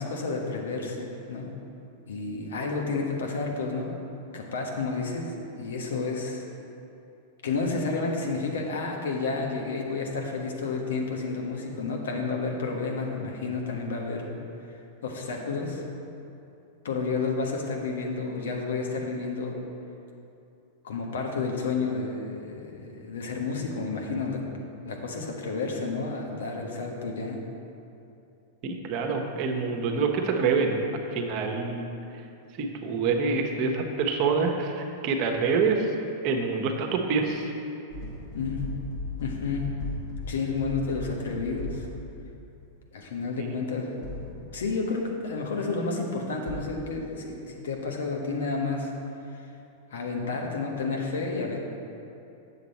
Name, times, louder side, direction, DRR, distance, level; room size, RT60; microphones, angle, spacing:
voice 1, 0.0-1.5 2.1-3.9 4.3-6.4 7.4-14.3 15.0-15.8 16.8-19.6 20.8-24.4 24.8-27.4 38.3-38.6 39.2-39.7 40.3-41.9 42.9-44.0 44.5-48.9 49.9-51.6, left 4 dB, 75° left, 1 dB, 1.3 m, -31 dB
voice 2, 28.6-30.8 31.1-31.9 32.6-35.9 36.2-37.5 43.4-43.6, right 4 dB, 45° right, 3 dB, 1.1 m, -26 dB
sound 1, 37.9-42.6 44.0-44.9 46.5-46.8, left 2 dB, 45° left, 1.5 m, -38 dB
8.1 x 7.2 x 4.3 m, 2.8 s
hypercardioid pair, 105°, 0 cm